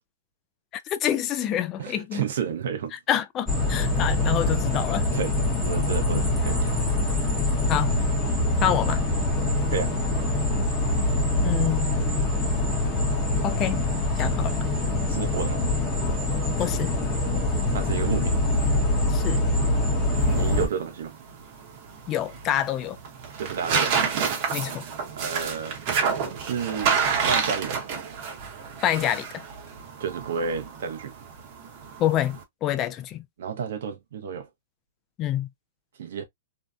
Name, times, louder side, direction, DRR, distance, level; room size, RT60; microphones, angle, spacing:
voice 1, 0.9-2.2 3.1-5.1 7.7-8.0 8.6-9.0 11.4-12.2 13.4-13.8 14.2-14.6 16.6-17.0 19.1-19.4 22.1-23.0 24.5-24.8 28.8-29.3 32.0-33.2 35.2-35.5, left 11 dB, 25° left, 0.3 m, -27 dB
voice 2, 1.8-2.9 5.1-5.4 5.6-6.8 9.7-9.9 15.1-15.6 17.7-18.3 20.3-21.1 23.4-23.9 25.2-25.8 26.4-26.9 27.3-27.8 30.0-31.1 33.4-34.5 36.0-36.2, right 7 dB, 70° right, 0.7 m, -31 dB
sound 1, 3.5-20.7, left 2 dB, 5° left, 0.8 m, -24 dB
sound 2, 20.2-32.4, right 6 dB, 40° right, 0.9 m, -29 dB
2.7 x 2.1 x 2.3 m
hypercardioid pair, 155°, 0 cm